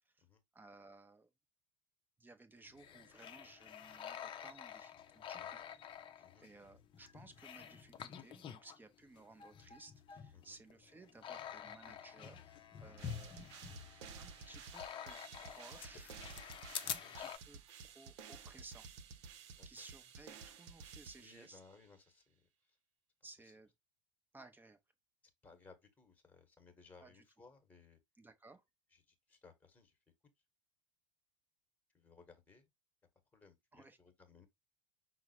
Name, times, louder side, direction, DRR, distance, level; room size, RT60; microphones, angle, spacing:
voice 1, 0.5-1.3 2.2-5.6 6.2-13.3 14.2-18.9 19.6-21.6 23.2-23.7 24.3-24.8 27.0-27.2 28.2-28.6 33.7-34.0, right 2 dB, 10° right, 0.8 m, -59 dB
sound 1, 2.7-8.8 9.2-17.4, left 8 dB, 30° left, 0.7 m, -48 dB
sound 2, 13.0-21.8, right 6 dB, 60° right, 0.8 m, -53 dB
voice 2, 16.8-17.1 19.5-19.7 21.2-22.5 25.4-28.0 28.9-30.0 31.9-32.7 33.3-34.5, left 4 dB, 10° left, 1.3 m, -62 dB
5.8 x 2.1 x 4.3 m
figure-of-eight pair, 80°, 17 cm